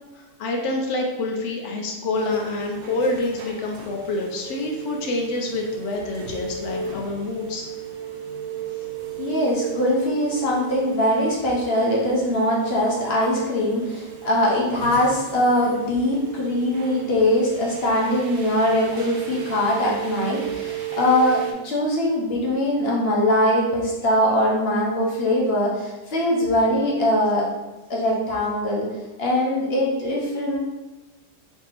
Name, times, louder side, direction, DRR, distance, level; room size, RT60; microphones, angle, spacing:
voice 1, 0.1-7.7, left 2 dB, 85° left, 1 dB, 0.6 m, -27 dB
sound 1, 2.1-21.5, right 8 dB, 75° right, 0.6 m, -35 dB
voice 2, 9.2-27.5 27.9-28.9 29.2-30.6, left 1 dB, 50° left, -4 dB, 0.8 m, -22 dB
3.5 x 2.7 x 4.1 m, 1.1 s
omnidirectional pair, 1.9 m